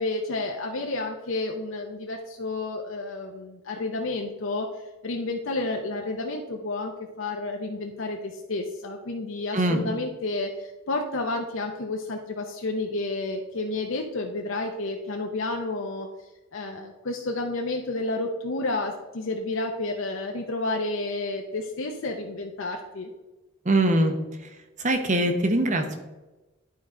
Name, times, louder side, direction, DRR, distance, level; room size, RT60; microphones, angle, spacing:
voice 1, 0.0-6.9 7.2-16.1 16.5-23.1, left 2 dB, 60° left, 2 dB, 0.7 m, -30 dB
voice 2, 9.5-9.9 23.6-24.2 24.4-24.5 24.8-26.0, right 1 dB, 35° right, 5 dB, 0.9 m, -22 dB
11.5 x 4.7 x 3.7 m, 1.1 s
head